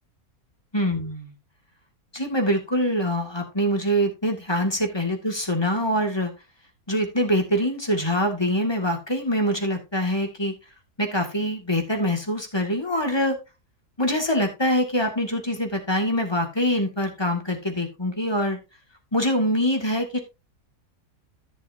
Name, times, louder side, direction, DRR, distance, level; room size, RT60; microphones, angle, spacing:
voice 1, 0.7-1.3 2.1-6.3 6.9-10.5 11.0-13.4 14.0-18.6 19.1-20.2, equal, 15° left, 3 dB, 2.2 m, -24 dB
14.0 x 6.9 x 2.7 m, 0.26 s
omnidirectional pair, 1.7 m